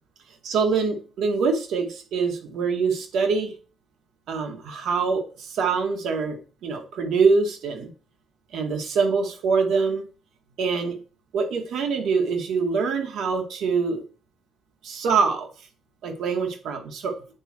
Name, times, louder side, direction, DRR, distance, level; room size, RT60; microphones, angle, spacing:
voice 1, 0.4-3.5 4.3-7.9 8.5-10.1 10.6-11.0 11.3-14.0 14.8-15.5 16.0-17.2, right 5 dB, 80° right, 4 dB, 2.1 m, -24 dB
8.8 x 4.7 x 4.3 m, 0.36 s
cardioid pair, 90°, 0 cm